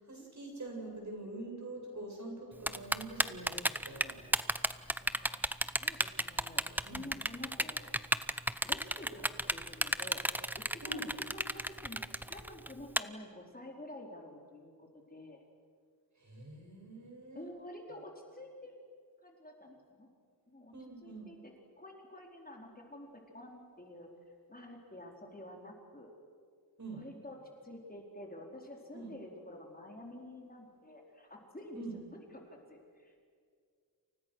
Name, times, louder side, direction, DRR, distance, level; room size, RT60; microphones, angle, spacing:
voice 1, 0.0-4.2 6.8-7.1 10.8-11.1 16.1-17.5 20.7-21.3 26.8-27.0 28.9-29.1 31.7-31.9, right 2 dB, 50° right, 1 dB, 7.9 m, -45 dB
Typing, 2.7-13.0, right 1 dB, 5° right, 0.8 m, -32 dB
voice 2, 5.0-5.4 5.8-7.9 8.6-15.4 17.3-18.8 19.2-20.1 20.5-20.7 21.0-21.5 21.8-24.1 24.5-26.1 26.9-31.8 32.1-33.2, left 1 dB, 25° left, 0 dB, 4.4 m, -49 dB
30.0 x 29.0 x 6.5 m, 2.1 s
wide cardioid pair, 95°, 37 cm